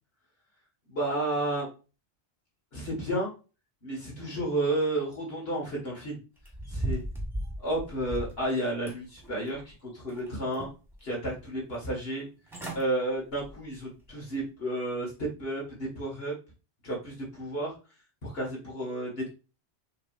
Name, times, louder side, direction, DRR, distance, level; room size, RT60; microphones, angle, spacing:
voice 1, 0.9-1.7 2.7-3.3 3.8-6.2 6.7-7.0 7.6-10.7 11.0-12.3 12.8-16.3 16.8-17.7 18.2-19.3, right 1 dB, 65° left, -2 dB, 2.1 m, -31 dB
sound 1, 6.4-8.4 8.9-9.7 10.1-10.9 11.4-11.5 12.2-12.3 12.5-12.8 13.3-13.6 14.0-14.1, right 1 dB, ahead, 1.4 m, -36 dB
6.6 x 3.2 x 2.5 m, 0.32 s
omnidirectional pair, 1.1 m